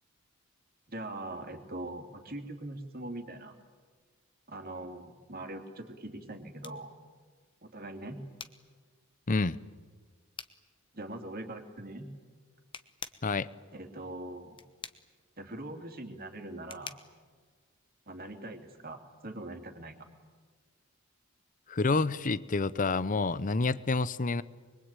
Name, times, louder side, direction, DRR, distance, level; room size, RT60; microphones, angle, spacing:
voice 1, 0.9-3.5 4.5-6.9 7.6-8.2 10.9-12.1 13.7-14.6 15.4-17.0 18.1-20.0, right 1 dB, 45° right, 2.9 m, -42 dB
sound 1, 6.6-18.4, left 6 dB, 25° left, 1.1 m, -51 dB
voice 2, 9.3-9.6 13.2-13.5 21.7-24.4, left 3 dB, 40° left, 0.7 m, -28 dB
25.0 x 22.5 x 9.0 m
head